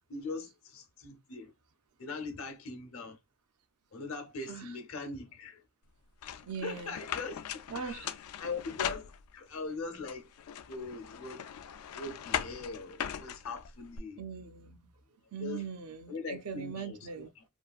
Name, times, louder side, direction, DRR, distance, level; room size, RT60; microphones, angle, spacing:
voice 1, 0.1-1.5 2.0-3.2 3.9-5.6 6.2-8.1 8.4-10.3 10.7-11.5 11.9-14.2 15.4-15.6 16.1-17.4, left 3 dB, 70° left, 0.8 m, -41 dB
sound 1, 6.2-9.6 10.1-14.0, left 9 dB, 85° left, 0.4 m, -39 dB
voice 2, 6.5-7.0 7.7-8.1 14.2-14.9 15.3-17.3, right 6 dB, 85° right, 0.5 m, -40 dB
3.3 x 2.4 x 2.3 m
head